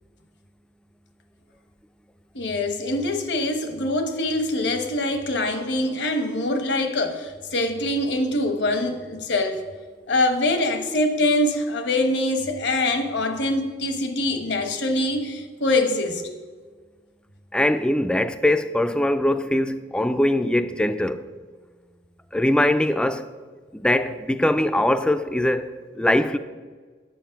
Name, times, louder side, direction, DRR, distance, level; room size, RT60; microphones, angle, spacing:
voice 1, 2.3-9.6 10.1-16.2, left 1 dB, 75° left, 1.1 m, -24 dB
voice 2, 17.5-21.2 22.3-23.3 23.7-25.7 26.0-26.4, left 1 dB, 5° left, 0.4 m, -21 dB
9.3 x 7.4 x 5.8 m
head